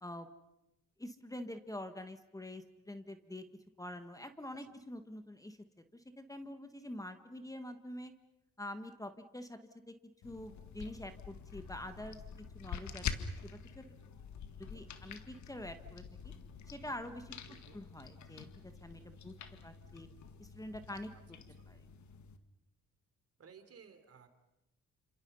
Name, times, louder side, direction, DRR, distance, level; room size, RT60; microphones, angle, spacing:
voice 1, 1.0-3.4 3.8-5.6 5.9-8.1 8.6-9.6 9.9-10.0 10.2-12.2 12.5-13.8 14.6-16.3 16.7-17.3 17.7-19.3 19.6-20.1 20.4-21.1 21.7-21.8, left 1 dB, 10° left, 9 dB, 1.6 m, -46 dB
sound 1, 10.2-22.4, left 7 dB, 70° left, 1.9 m, -46 dB
voice 2, 17.4-17.8 21.6-21.7 23.4-24.3, right 6 dB, 50° right, 8 dB, 3.4 m, -58 dB
29.5 x 27.0 x 5.6 m, 0.90 s
cardioid pair, 90°, 30 cm